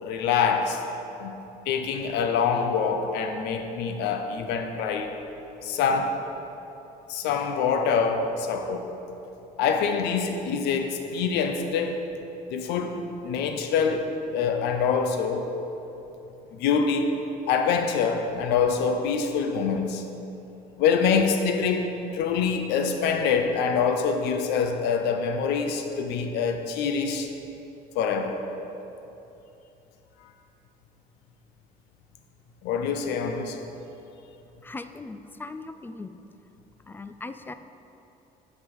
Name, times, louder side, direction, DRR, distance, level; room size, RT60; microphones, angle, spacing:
voice 1, 0.0-0.8 1.2-1.3 1.7-5.2 5.6-6.1 7.1-8.8 9.6-12.1 12.5-14.1 14.3-15.5 16.5-17.1 17.5-20.0 20.8-27.3 27.9-28.4 32.6-33.6, left 6 dB, 90° left, 5 dB, 0.7 m, -25 dB
voice 2, 34.6-36.2 36.9-37.5, left 3 dB, 10° left, 10 dB, 0.3 m, -39 dB
8.1 x 5.2 x 5.5 m, 2.9 s
cardioid pair, 110°, 17 cm